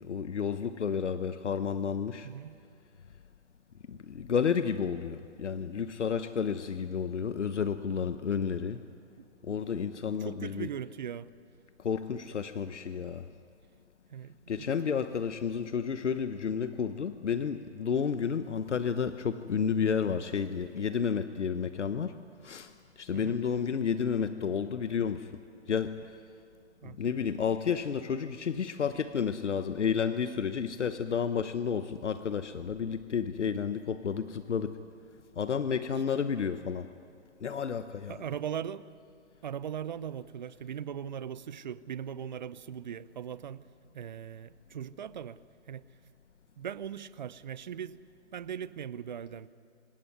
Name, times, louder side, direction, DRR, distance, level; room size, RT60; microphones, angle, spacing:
voice 1, 0.0-2.3 3.9-8.8 9.4-10.7 11.8-13.3 14.5-22.1 22.4-25.3 25.7-26.2 26.8-34.8 35.4-36.9 37.4-38.2, left 6 dB, 75° left, 11 dB, 1.1 m, -31 dB
voice 2, 2.2-2.6 9.2-9.3 10.2-11.3 14.1-14.7 23.1-23.4 26.8-27.0 38.1-38.9 39.4-43.6 43.9-45.4 45.7-45.9 46.6-48.0 48.3-49.5, right 8 dB, 40° right, 17 dB, 0.7 m, -39 dB
26.5 x 16.5 x 9.5 m, 2.3 s
hypercardioid pair, 155°, 35 cm